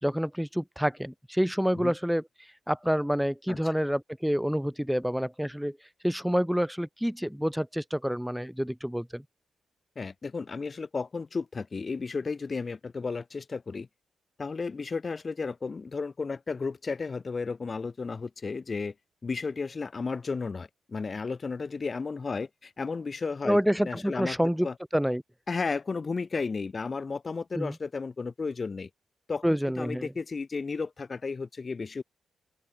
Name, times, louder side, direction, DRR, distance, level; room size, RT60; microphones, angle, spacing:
voice 1, 0.0-2.2 2.7-5.8 6.0-9.2 23.4-24.7 24.9-25.2 27.5-27.7 29.4-30.1, equal, ahead, 4.7 m, -28 dB
voice 2, 10.0-13.9 14.4-18.9 19.2-24.4 24.6-24.7 25.5-28.9 29.3-32.0, left 4 dB, 40° left, 3.6 m, -33 dB
open air
cardioid pair, 80°, 0 cm